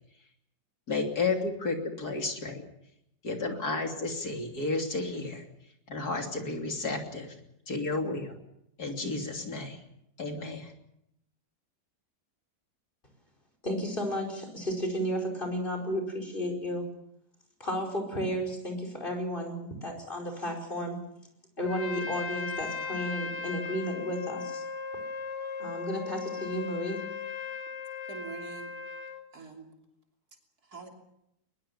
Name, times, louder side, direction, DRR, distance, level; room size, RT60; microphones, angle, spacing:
voice 1, 0.9-2.6 3.2-5.4 5.9-7.3 7.7-8.3 8.8-9.8 10.2-10.7, left 3 dB, 65° left, 3 dB, 3.6 m, -32 dB
voice 2, 13.6-16.9 17.6-21.0 21.6-24.6 25.6-27.1, equal, 30° left, 4 dB, 5.1 m, -33 dB
Trumpet, 21.6-29.3, left 5 dB, 90° left, 2.6 m, -37 dB
voice 3, 28.1-29.7 30.6-30.9, right 4 dB, 65° right, 1 dB, 3.6 m, -45 dB
21.5 x 21.5 x 7.2 m, 0.79 s
omnidirectional pair, 1.8 m